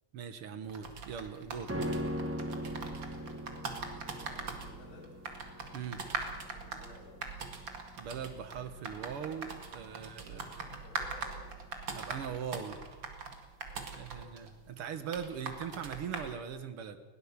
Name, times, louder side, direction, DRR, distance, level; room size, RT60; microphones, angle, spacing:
voice 1, 0.1-1.9 5.7-6.0 8.0-10.4 11.9-12.8 13.9-17.0, right 7 dB, 80° right, 10 dB, 2.2 m, -40 dB
sound 1, 0.7-16.3, right 4 dB, 60° right, 2.7 m, -42 dB
sound 2, 1.7-11.1 11.4-11.5, equal, 10° right, 0.9 m, -41 dB
voice 2, 2.9-5.2 6.0-7.3 9.9-11.6 13.7-14.4, left 3 dB, 75° left, -2 dB, 7.2 m, -56 dB
20.5 x 17.5 x 7.4 m, 1.4 s
omnidirectional pair, 2.4 m